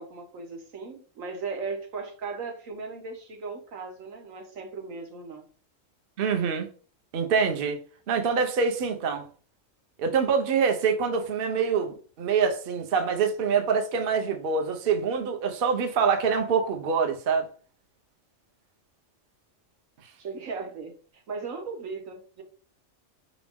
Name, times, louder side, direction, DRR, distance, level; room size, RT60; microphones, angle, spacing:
voice 1, 0.0-5.5 20.2-22.4, right 4 dB, 80° right, 1.4 m, -37 dB
voice 2, 6.2-6.7 7.1-7.8 8.1-9.3 10.0-17.5, right 6 dB, 50° right, 0.8 m, -25 dB
5.1 x 3.0 x 3.5 m
omnidirectional pair, 1.3 m